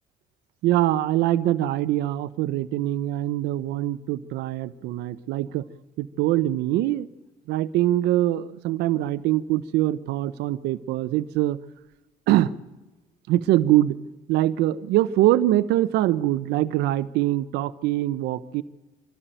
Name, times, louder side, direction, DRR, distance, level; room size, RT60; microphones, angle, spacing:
voice 1, 0.6-5.7 6.0-7.1 7.5-11.6 12.3-12.5 13.3-14.0 14.3-18.6, right 14 dB, 85° right, 13 dB, 0.7 m, -23 dB
25.0 x 12.5 x 9.1 m, 1.1 s
cardioid pair, 110°, 17 cm